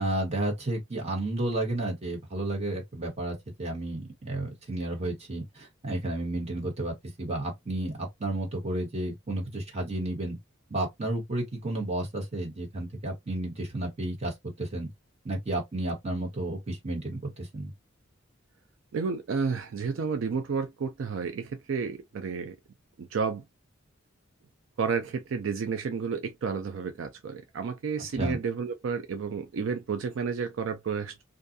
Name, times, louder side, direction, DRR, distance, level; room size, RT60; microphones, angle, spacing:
voice 1, 0.0-10.4 10.7-14.9 15.2-17.7 28.1-28.4, right 1 dB, 35° right, 1.3 m, -32 dB
voice 2, 18.9-22.6 23.0-23.5 24.8-31.2, right 5 dB, 70° right, 0.4 m, -31 dB
2.5 x 2.3 x 2.5 m
head